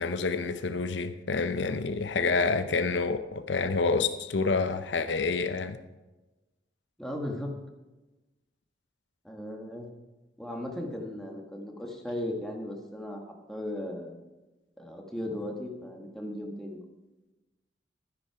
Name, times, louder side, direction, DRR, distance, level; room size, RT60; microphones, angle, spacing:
voice 1, 0.0-5.8, left 4 dB, 75° left, 0.7 m, -28 dB
voice 2, 7.0-7.6 9.2-9.9 10.4-14.1 14.8-16.8, left 1 dB, ahead, 1.7 m, -37 dB
12.5 x 10.0 x 4.8 m
head